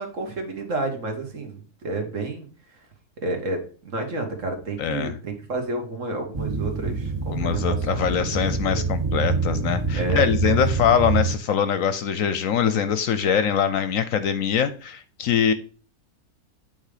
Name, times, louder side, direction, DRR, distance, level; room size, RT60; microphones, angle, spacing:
voice 1, 0.0-2.5 3.2-8.8 9.9-10.6, right 2 dB, 55° right, 3 dB, 1.7 m, -30 dB
voice 2, 4.8-5.1 7.3-15.5, left 8 dB, 70° left, 11 dB, 0.9 m, -23 dB
sound 1, 6.3-11.4, right 4 dB, 40° right, 0.4 m, -25 dB
8.3 x 3.6 x 5.0 m, 0.39 s
omnidirectional pair, 1.6 m